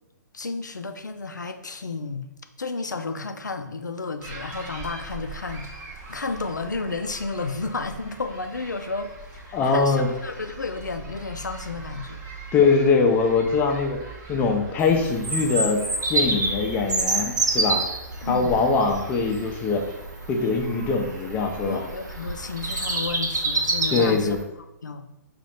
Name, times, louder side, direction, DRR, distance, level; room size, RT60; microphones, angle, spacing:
voice 1, 0.3-2.3 2.6-9.1 9.5-12.3 18.2-18.6 21.7-25.1, left 3 dB, 80° left, 7 dB, 0.4 m, -32 dB
sound 1, 4.2-22.9, right 3 dB, 25° right, 0.9 m, -42 dB
voice 2, 9.5-10.1 12.5-14.0 14.3-15.8 16.1-17.8 18.2-19.8 20.3-21.8 23.9-24.4, left 4 dB, 20° left, 3 dB, 0.5 m, -22 dB
Bird vocalization bird call bird song, 14.8-24.4, right 3 dB, 70° right, 0.8 m, -28 dB
4.9 x 2.5 x 4.2 m, 0.92 s
figure-of-eight pair, 120°, 10 cm